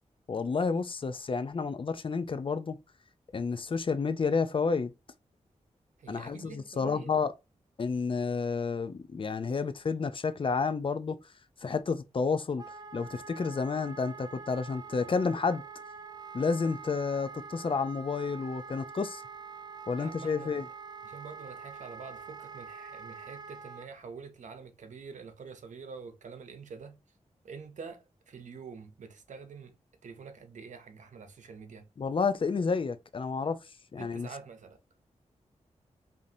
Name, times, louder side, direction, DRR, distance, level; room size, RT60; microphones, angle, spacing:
voice 1, 0.3-2.8 3.3-4.9 6.1-7.3 7.8-11.2 11.6-12.6 12.9-15.6 16.3-19.2 19.9-20.7 32.0-33.6 33.9-34.3, left 5 dB, 45° left, 0.5 m, -30 dB
voice 2, 6.0-7.2 20.0-20.6 21.0-27.0 27.4-29.7 30.0-31.9 34.0-34.8, right 5 dB, 80° right, 0.8 m, -46 dB
Wind instrument woodwind instrument, 12.6-23.9, right 5 dB, 35° right, 0.4 m, -45 dB
5.3 x 2.7 x 2.8 m
wide cardioid pair, 85°, 12 cm